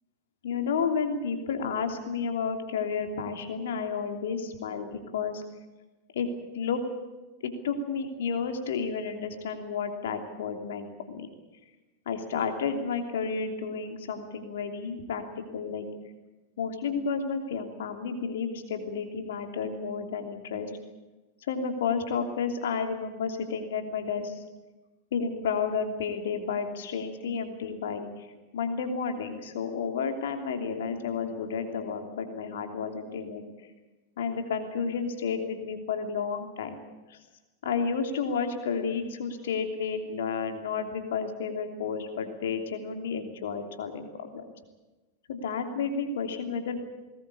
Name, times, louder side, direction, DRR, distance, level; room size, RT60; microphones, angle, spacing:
voice 1, 0.4-5.4 6.1-6.3 6.5-6.8 7.4-11.3 12.1-15.9 16.6-20.7 21.5-24.4 25.1-28.1 28.5-33.4 34.2-36.7 37.1-37.2 37.6-44.4 45.3-46.9, left 5 dB, 60° left, 5 dB, 3.0 m, -31 dB
21.0 x 19.0 x 8.5 m, 1.1 s
figure-of-eight pair, 90°, 0 cm